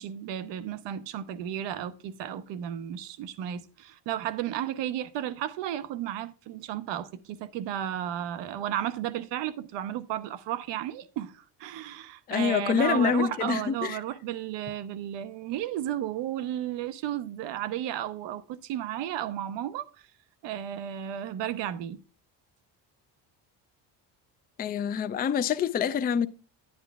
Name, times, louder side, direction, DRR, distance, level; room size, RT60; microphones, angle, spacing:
voice 1, 0.0-19.9 20.4-22.0, right 11 dB, 85° right, 0.8 m, -33 dB
voice 2, 12.3-14.0 24.6-26.3, left 7 dB, 25° left, 0.4 m, -26 dB
10.0 x 9.7 x 2.3 m
cardioid pair, 130°, 42 cm